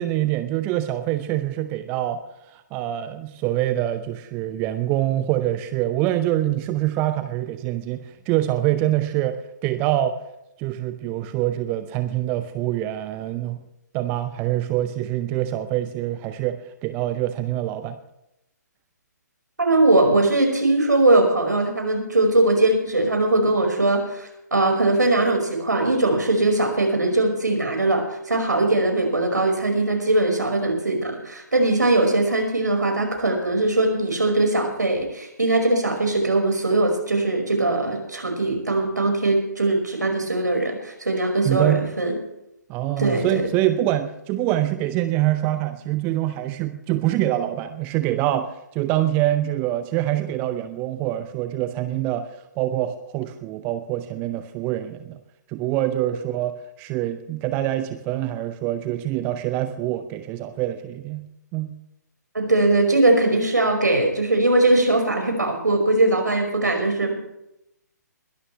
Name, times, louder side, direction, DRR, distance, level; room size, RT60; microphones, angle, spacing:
voice 1, 0.0-2.2 2.5-10.2 10.6-13.6 13.9-18.0 41.4-41.8 42.7-52.3 52.6-55.2 55.5-61.3 61.5-61.7, right 13 dB, 20° right, 10 dB, 0.6 m, -25 dB
voice 2, 19.6-42.2 43.0-43.4 62.3-67.2, right 2 dB, 75° right, 3 dB, 5.5 m, -20 dB
21.0 x 12.5 x 3.3 m, 0.84 s
figure-of-eight pair, 135°, 10 cm